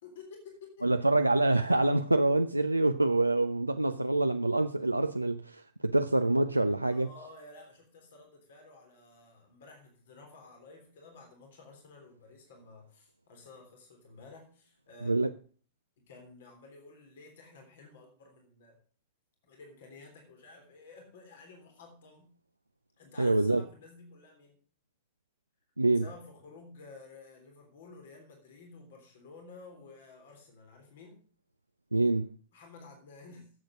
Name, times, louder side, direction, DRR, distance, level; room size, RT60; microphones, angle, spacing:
voice 1, 0.0-0.9 6.9-15.2 16.0-18.8 19.4-22.3 23.0-24.6 25.9-31.2 32.5-33.5, left 3 dB, 60° left, 3.4 m, -52 dB
voice 2, 0.8-7.1 15.0-15.3 23.2-23.6 25.8-26.0 31.9-32.3, right 2 dB, 85° right, 0.4 m, -26 dB
11.0 x 7.9 x 6.3 m
figure-of-eight pair, 90°, 0 cm